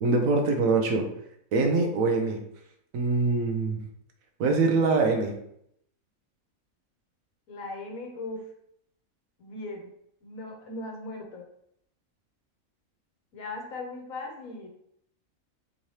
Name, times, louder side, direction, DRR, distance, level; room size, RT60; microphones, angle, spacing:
voice 1, 0.0-1.1 1.5-2.4 2.9-3.8 4.4-5.3, right 3 dB, 75° right, 3 dB, 1.1 m, -23 dB
voice 2, 7.5-8.4 9.4-9.9 10.2-11.4 13.3-14.7, left 2 dB, 75° left, 2 dB, 1.2 m, -38 dB
3.7 x 3.1 x 2.7 m, 0.73 s
omnidirectional pair, 1.5 m